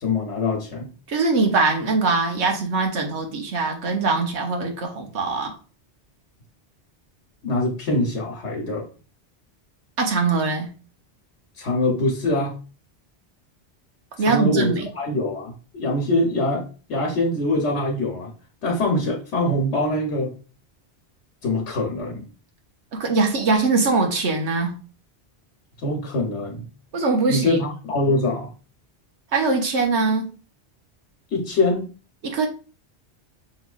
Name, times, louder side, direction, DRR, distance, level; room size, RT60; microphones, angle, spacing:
voice 1, 0.0-0.9 7.4-8.9 11.6-12.5 14.2-18.3 18.6-20.3 21.4-22.3 25.8-26.7 27.3-28.5 31.3-31.9, left 2 dB, 80° left, 1 dB, 1.2 m, -24 dB
voice 2, 1.1-5.5 10.0-10.7 14.2-14.9 22.9-24.7 26.9-27.6 29.3-30.2 32.2-32.5, right 3 dB, 80° right, 3 dB, 1.2 m, -22 dB
5.6 x 3.1 x 2.3 m, 0.36 s
omnidirectional pair, 1.2 m